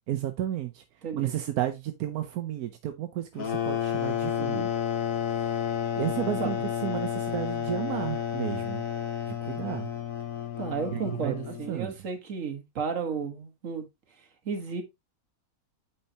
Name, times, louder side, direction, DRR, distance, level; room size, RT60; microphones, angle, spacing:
voice 1, 0.1-0.8 1.1-4.7 5.9-6.5 6.8-8.8 9.4-9.9 10.9-11.9, right 12 dB, 85° right, 1.2 m, -32 dB
voice 2, 1.0-1.4 4.3-4.7 5.3-5.4 6.4-6.6 10.6-13.9 14.2-14.8, right 5 dB, 60° right, 1.7 m, -33 dB
sound 1, 3.4-11.8, left 9 dB, 65° left, 1.5 m, -31 dB
8.6 x 4.5 x 2.7 m
omnidirectional pair, 1.5 m